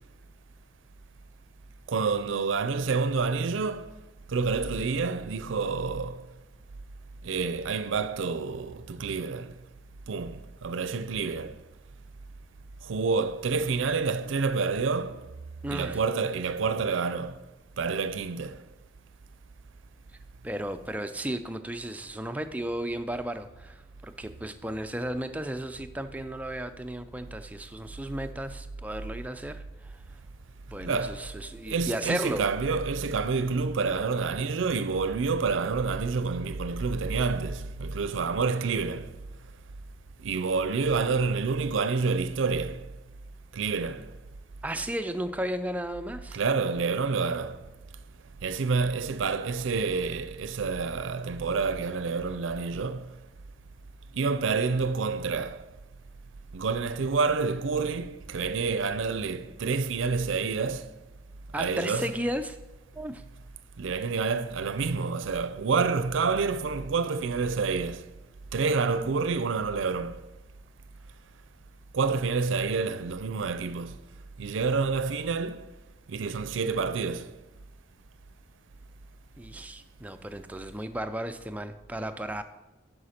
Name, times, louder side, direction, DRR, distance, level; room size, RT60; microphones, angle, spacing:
voice 1, 1.9-4.0 4.3-6.3 7.2-9.5 10.1-11.5 12.8-15.3 15.7-17.4 17.8-18.6 30.8-31.3 31.7-39.1 40.2-42.8 43.5-44.1 46.3-47.6 48.4-53.1 54.1-55.6 56.5-60.9 61.5-62.1 63.8-68.1 68.5-70.2 71.9-74.0 74.4-75.7 76.1-77.3, right 4 dB, 80° right, 0.5 m, -28 dB
voice 2, 15.6-16.0 20.4-30.0 30.7-32.5 44.6-46.4 61.5-62.6 62.9-63.2 79.4-82.4, right 1 dB, 10° right, 0.3 m, -34 dB
11.5 x 4.8 x 4.3 m
head